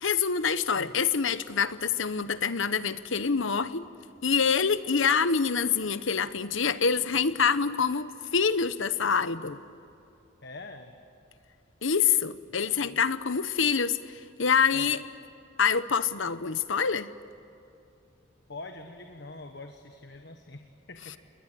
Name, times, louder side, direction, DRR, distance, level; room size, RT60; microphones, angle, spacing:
voice 1, 0.0-3.8 4.2-9.6 11.8-15.0 15.6-17.1, left 6 dB, 75° left, 13 dB, 1.0 m, -26 dB
voice 2, 10.4-10.9 12.6-13.0 14.7-14.9 18.5-21.2, left 2 dB, 55° left, 5 dB, 1.4 m, -44 dB
29.0 x 21.0 x 9.1 m, 2.7 s
head